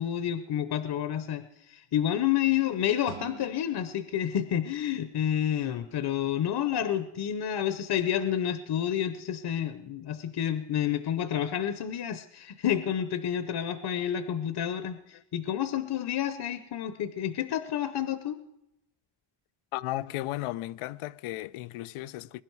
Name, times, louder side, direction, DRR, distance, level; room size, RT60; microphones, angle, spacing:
voice 1, 0.0-18.4, left 10 dB, 50° left, 0.8 m, -29 dB
sound 1, 3.0-6.1, right 12 dB, 60° right, 0.8 m, -50 dB
voice 2, 19.7-22.4, left 16 dB, 85° left, 0.6 m, -35 dB
21.5 x 11.0 x 4.6 m
cardioid pair, 105°, 50 cm